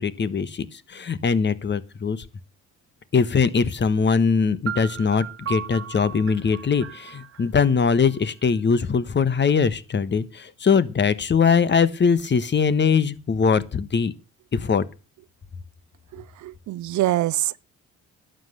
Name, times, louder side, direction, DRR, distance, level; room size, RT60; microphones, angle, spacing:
voice 1, 0.0-2.2 3.1-14.1 14.5-14.8, left 5 dB, 35° left, 1.3 m, -21 dB
sound 1, 4.7-8.5, right 9 dB, 50° right, 1.2 m, -36 dB
voice 2, 16.4-17.7, right 15 dB, 75° right, 0.6 m, -24 dB
11.5 x 8.0 x 8.1 m
cardioid pair, 90°, 30 cm